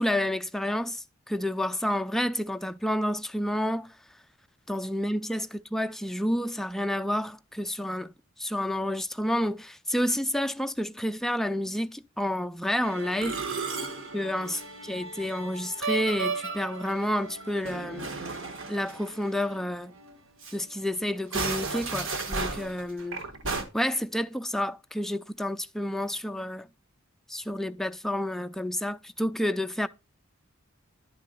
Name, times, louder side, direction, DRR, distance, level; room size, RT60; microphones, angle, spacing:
voice 1, 0.0-3.9 4.7-8.1 8.4-13.4 14.1-18.1 18.7-19.9 20.5-23.2 23.7-26.7 27.3-29.9, left 1 dB, ahead, 0.3 m, -30 dB
Musical instrument, 12.8-19.7 20.0-20.1 20.4-20.5 21.1-23.6, right 4 dB, 65° right, 1.2 m, -34 dB
10.5 x 3.7 x 5.3 m
head